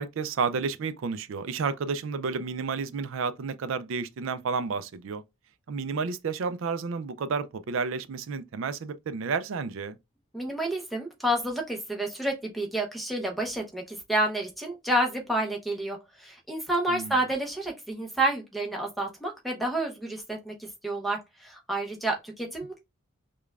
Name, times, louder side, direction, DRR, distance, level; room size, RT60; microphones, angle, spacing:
voice 1, 0.0-5.2 5.7-10.0 16.9-17.2, right 5 dB, 70° right, 0.4 m, -31 dB
voice 2, 10.3-22.8, right 1 dB, ahead, 0.7 m, -29 dB
5.0 x 2.3 x 2.3 m
head